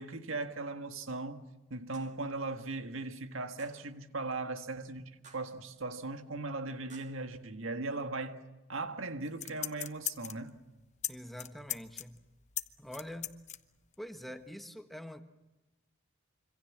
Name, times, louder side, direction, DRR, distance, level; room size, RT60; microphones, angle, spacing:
voice 1, 0.0-8.4 8.7-10.6, right 3 dB, 70° right, 1.8 m, -38 dB
sound 1, 1.9-2.3 3.6-3.9 5.2-5.6 6.9-7.2, right 5 dB, 35° right, 2.1 m, -56 dB
sound 2, 9.3-10.5 11.0-11.1 11.4-13.6 13.9-14.0, left 11 dB, 35° left, 1.0 m, -37 dB
voice 2, 11.1-12.2 12.8-13.4 14.0-15.2, equal, ahead, 1.3 m, -45 dB
26.5 x 25.5 x 7.4 m
head